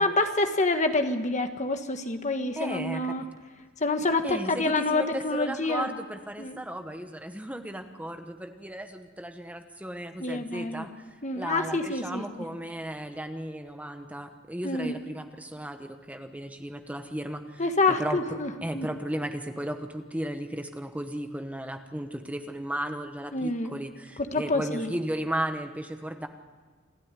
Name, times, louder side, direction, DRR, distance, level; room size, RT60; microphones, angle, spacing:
voice 1, 0.0-3.2 3.8-5.9 6.4-6.6 10.2-10.9 11.2-12.2 14.6-15.0 17.6-18.9 23.3-23.7 24.3-24.9, left 2 dB, 35° left, 6 dB, 1.6 m, -27 dB
voice 2, 2.6-3.2 4.2-17.6 17.9-26.3, right 1 dB, 5° right, 7 dB, 1.2 m, -35 dB
27.5 x 13.0 x 9.8 m, 1.5 s
head